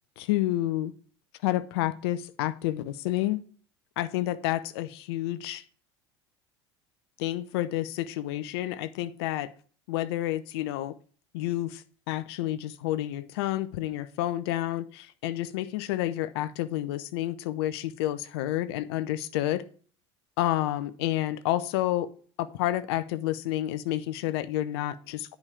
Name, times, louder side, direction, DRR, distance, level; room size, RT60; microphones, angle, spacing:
voice 1, 0.2-0.9 1.4-3.4 4.0-5.6 7.2-9.5 9.9-10.9 11.3-19.6 20.4-22.1 22.4-25.4, left 14 dB, 65° left, 15 dB, 0.7 m, -29 dB
9.7 x 5.2 x 4.5 m, 0.43 s
figure-of-eight pair, 70°, 14 cm